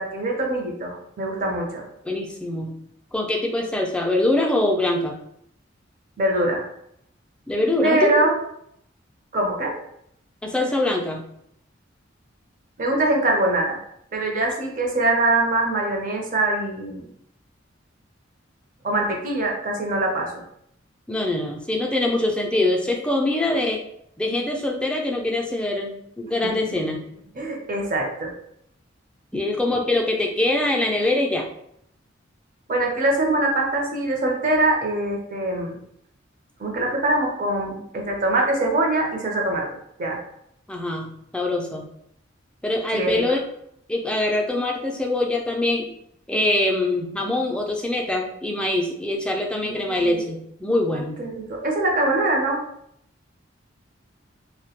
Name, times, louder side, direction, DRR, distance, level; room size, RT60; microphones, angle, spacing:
voice 1, 0.0-1.8 6.2-6.6 7.8-8.3 9.3-9.8 12.8-13.8 14.1-17.1 18.8-20.5 26.4-26.5 27.4-28.3 29.7-29.8 32.7-35.8 36.6-39.6 40.0-40.2 42.9-43.2 49.5-50.2 50.9-52.6, right 2 dB, 45° right, 0 dB, 0.5 m, -23 dB
voice 2, 2.0-2.7 3.1-5.2 7.5-8.3 10.4-11.2 21.1-23.8 24.2-27.0 29.3-31.4 40.7-41.1 41.3-41.9 42.6-43.4 43.9-45.9 46.3-51.2, left 1 dB, 5° left, 0 dB, 0.3 m, -23 dB
2.2 x 2.1 x 2.8 m, 0.73 s
head